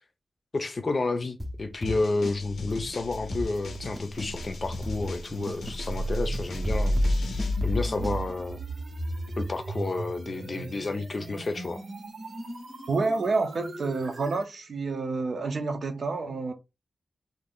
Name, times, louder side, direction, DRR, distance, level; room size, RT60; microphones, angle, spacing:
voice 1, 0.5-7.0 7.6-8.6 9.4-11.8, left 3 dB, 40° left, 0.5 m, -30 dB
sound 1, 1.4-2.4 2.7-2.8 3.1-4.4 4.8-8.2, equal, 10° right, 0.6 m, -35 dB
sound 2, 1.9-7.6, left 4 dB, 85° left, 0.6 m, -42 dB
sound 3, 2.4-14.5, equal, 85° right, 1.0 m, -33 dB
voice 2, 12.9-16.5, right 3 dB, 60° right, 0.6 m, -28 dB
2.6 x 2.6 x 3.5 m
wide cardioid pair, 155°, 0 cm